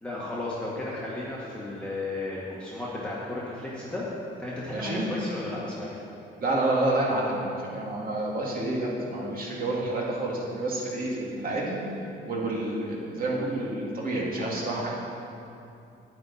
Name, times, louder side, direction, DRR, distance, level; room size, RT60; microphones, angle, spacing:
voice 1, 0.0-4.0 4.4-6.0, left 2 dB, 5° left, -8 dB, 1.8 m, -34 dB
voice 2, 4.7-5.0 6.4-11.8 12.3-14.9, right 2 dB, 45° right, -4 dB, 2.5 m, -29 dB
9.6 x 8.9 x 4.3 m, 2.7 s
cardioid pair, 90°, 20 cm